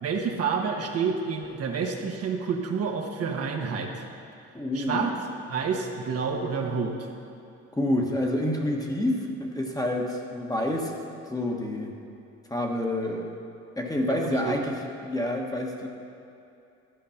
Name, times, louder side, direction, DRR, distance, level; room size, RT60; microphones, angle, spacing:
voice 1, 0.0-4.1 4.7-5.1 5.5-7.1 14.1-14.6, right 5 dB, 55° right, 2 dB, 1.2 m, -29 dB
voice 2, 4.5-5.2 7.7-11.0 11.3-11.9 12.5-13.3 13.8-14.7 15.0-15.9, left 1 dB, 10° left, 0 dB, 1.3 m, -28 dB
13.5 x 5.2 x 5.7 m, 2.7 s
supercardioid pair, 85°, 30 cm